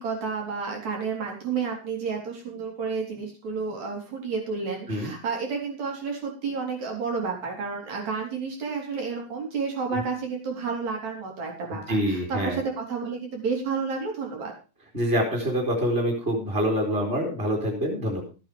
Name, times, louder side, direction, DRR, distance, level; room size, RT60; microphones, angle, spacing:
voice 1, 0.0-14.5, right 5 dB, 60° right, 1 dB, 5.0 m, -31 dB
voice 2, 11.9-12.6 14.9-18.2, equal, 15° right, -1 dB, 3.4 m, -26 dB
14.0 x 8.9 x 5.3 m, 0.33 s
omnidirectional pair, 3.8 m